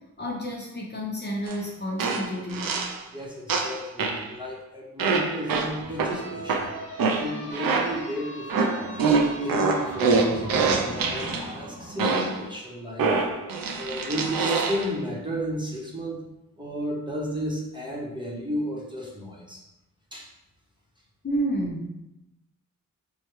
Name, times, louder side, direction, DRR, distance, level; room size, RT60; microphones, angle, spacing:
voice 1, 0.2-2.7 21.2-21.9, equal, 30° left, -2 dB, 0.6 m, -30 dB
sound 1, 1.5-1.6 2.0-3.0 3.5-4.3 5.0-8.1 8.5-11.4 12.0-12.5 13.0-14.9, right 4 dB, 85° right, 0.5 m, -25 dB
voice 2, 3.1-6.7 7.2-9.1 9.4-13.1 13.7-16.2 16.6-19.6 20.1-20.3, equal, 15° right, -4 dB, 0.9 m, -33 dB
sound 2, 5.8-12.1, equal, 80° left, 0.9 m, -40 dB
4.6 x 2.2 x 3.0 m, 0.90 s
wide cardioid pair, 95°, 33 cm